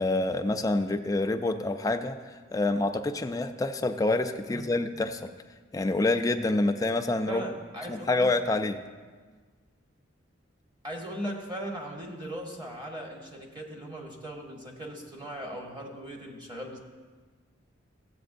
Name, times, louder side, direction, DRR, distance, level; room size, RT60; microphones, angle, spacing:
voice 1, 0.0-2.2 2.5-5.3 5.7-7.4 7.9-8.8, left 2 dB, 20° left, 6 dB, 0.3 m, -27 dB
voice 2, 7.3-8.1 10.8-16.8, right 1 dB, 20° right, 0 dB, 1.0 m, -38 dB
13.5 x 7.9 x 2.6 m, 1.4 s
head